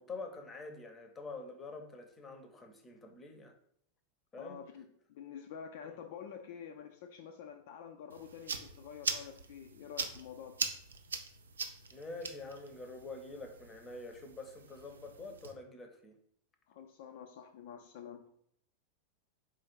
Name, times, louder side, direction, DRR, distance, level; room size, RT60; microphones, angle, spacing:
voice 1, 0.0-3.5 4.3-4.6 5.8-6.0 11.9-16.2, left 3 dB, 20° left, 5 dB, 0.7 m, -46 dB
voice 2, 4.4-10.6 16.7-18.2, left 8 dB, 50° left, 5 dB, 0.3 m, -48 dB
sound 1, 8.1-15.5, right 5 dB, 70° right, 0.4 m, -42 dB
4.3 x 2.5 x 4.4 m, 0.67 s
figure-of-eight pair, 90°, 0 cm